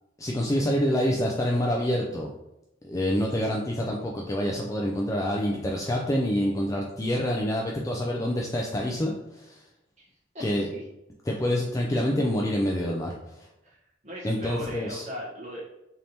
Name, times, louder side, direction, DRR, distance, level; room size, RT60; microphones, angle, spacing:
voice 1, 0.2-2.3 2.8-9.6 10.4-10.7 11.3-13.5 14.2-15.0, equal, 15° left, -1 dB, 0.3 m, -27 dB
voice 2, 10.3-10.8 13.6-15.6, equal, 35° right, -6 dB, 1.1 m, -38 dB
3.3 x 2.8 x 4.1 m, 0.89 s
head